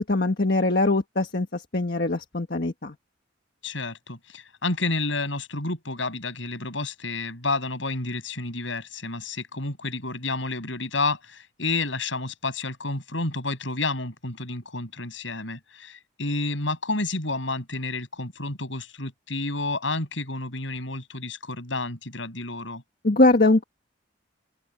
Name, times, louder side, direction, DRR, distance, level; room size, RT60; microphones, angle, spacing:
voice 1, 0.0-2.9 23.0-23.6, left 2 dB, 55° left, 1.5 m, -22 dB
voice 2, 3.6-22.8, left 3 dB, 75° left, 7.7 m, -30 dB
open air
head